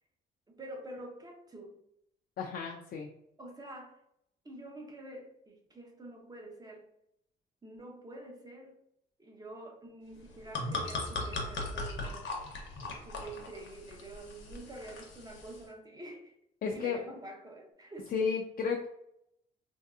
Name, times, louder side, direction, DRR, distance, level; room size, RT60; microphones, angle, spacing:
voice 1, 0.5-1.7 3.4-4.0 4.4-6.9 7.6-8.7 9.2-12.3 12.8-16.3 16.7-18.1, right 2 dB, 20° right, 1 dB, 0.7 m, -47 dB
voice 2, 2.4-3.1 16.6-17.0 18.1-18.9, left 5 dB, 50° left, 1 dB, 0.4 m, -32 dB
sound 1, 10.2-15.6, left 2 dB, 75° left, 0.8 m, -39 dB
3.1 x 2.7 x 2.3 m, 0.77 s
cardioid pair, 90°, 20 cm